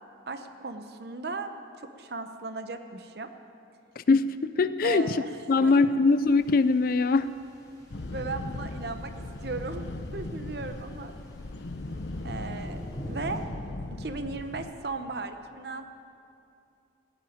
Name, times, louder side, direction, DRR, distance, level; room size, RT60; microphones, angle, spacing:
voice 1, 0.3-3.3 4.8-5.3 5.6-6.0 8.1-11.1 12.2-13.4 14.0-15.9, right 3 dB, 60° right, 7 dB, 0.8 m, -36 dB
voice 2, 4.0-5.2 5.5-7.3, left 3 dB, 50° left, 13 dB, 0.4 m, -22 dB
sound 1, 6.1-13.4, equal, 20° left, 3.3 m, -45 dB
sound 2, 7.9-14.7, left 2 dB, 70° left, 0.7 m, -38 dB
15.5 x 9.0 x 9.4 m, 2.6 s
head